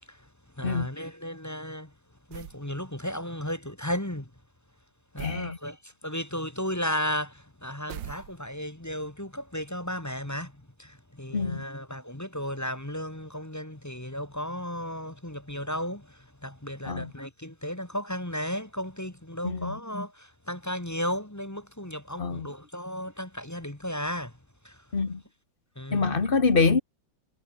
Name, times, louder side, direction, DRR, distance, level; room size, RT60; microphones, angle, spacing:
voice 1, 0.6-1.9 2.3-4.3 5.1-24.4 24.6-24.8 25.8-26.2, equal, 10° left, 1.8 m, -34 dB
sound 1, 2.3-2.7 5.2-5.5 7.9-8.7, right 10 dB, 75° right, 1.8 m, -41 dB
voice 2, 5.2-5.6 11.3-11.7 16.8-17.1 19.4-19.8 22.2-22.5 24.9-25.2 25.9-26.8, left 4 dB, 30° left, 1.6 m, -25 dB
omnidirectional pair, 2.0 m